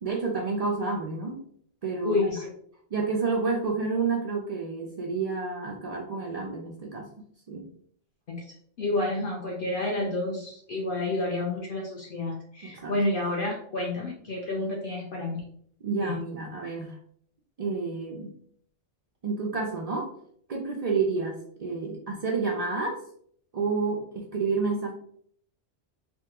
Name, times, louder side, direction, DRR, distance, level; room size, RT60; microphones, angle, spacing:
voice 1, 0.0-1.4 1.8-2.3 2.9-7.1 7.5-7.7 12.6-12.9 15.8-17.0 17.6-18.3 19.2-20.1 20.5-23.0 23.5-24.9, right 4 dB, 85° right, -1 dB, 0.3 m, -29 dB
voice 2, 2.0-2.5 8.3-8.4 8.8-15.4 16.0-16.1, left 2 dB, 60° left, -1 dB, 0.7 m, -29 dB
3.4 x 2.2 x 2.8 m, 0.62 s
omnidirectional pair, 1.2 m